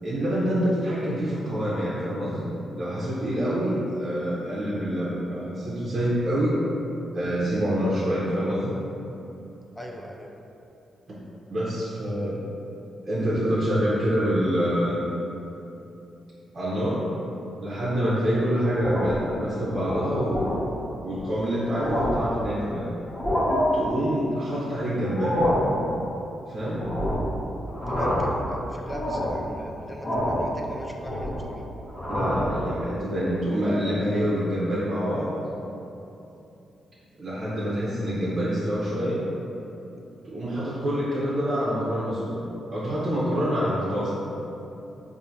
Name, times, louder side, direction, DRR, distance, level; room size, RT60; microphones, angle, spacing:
voice 1, 0.0-2.5 2.8-6.6 7.1-8.8 11.1-11.2 11.5-12.4 13.1-15.0 16.5-17.1 17.6-20.6 21.0-22.9 23.7-25.5 26.5-26.9 32.1-35.3 37.2-39.3 40.2-44.1, equal, 50° right, -9 dB, 0.8 m, -26 dB
voice 2, 9.8-10.3 27.9-31.6, equal, 10° left, 0 dB, 0.4 m, -39 dB
sound 1, 18.7-19.3 19.7-19.9 20.3-20.6 21.2-21.3 21.6-22.3 23.0-23.6 25.0-25.7 26.8-27.3 27.7-28.4 28.8-29.4 30.0-30.5 30.8-31.5 31.9-32.5, equal, 35° left, 1.4 m, -27 dB
4.3 x 2.7 x 2.7 m, 2.9 s
supercardioid pair, 50°, 0 cm